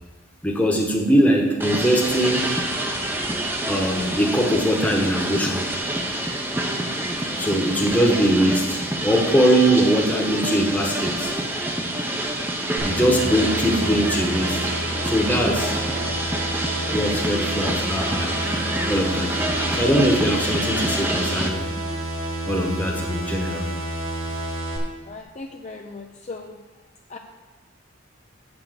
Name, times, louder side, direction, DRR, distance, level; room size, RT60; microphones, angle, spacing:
voice 1, 0.4-2.5 3.7-5.7 5.9-6.0 7.4-11.3 12.8-14.6 15.0-15.7 16.9-18.4 18.9-19.3 19.7-21.7 22.5-23.7, equal, 5° left, 0 dB, 1.1 m, -21 dB
sound 1, 1.6-21.5, right 1 dB, 10° right, 0.7 m, -27 dB
sound 2, 12.8-24.8, right 1 dB, 75° right, 2.2 m, -30 dB
voice 2, 25.1-26.5 27.1-27.2, left 3 dB, 30° left, 2 dB, 0.5 m, -37 dB
8.2 x 6.0 x 6.7 m, 1.3 s
head